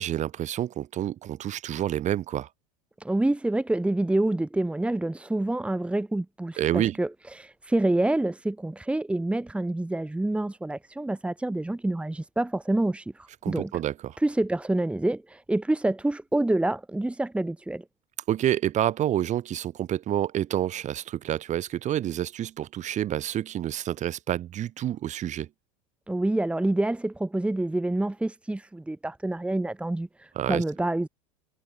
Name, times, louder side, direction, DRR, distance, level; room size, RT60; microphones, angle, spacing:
voice 1, 0.0-2.5 6.6-7.0 13.4-14.2 18.3-25.5 30.4-30.6, right 12 dB, 40° right, 6.3 m, -28 dB
voice 2, 3.0-13.7 14.2-17.8 26.1-31.1, right 2 dB, 5° right, 2.7 m, -27 dB
supercardioid pair, 110°, 19 cm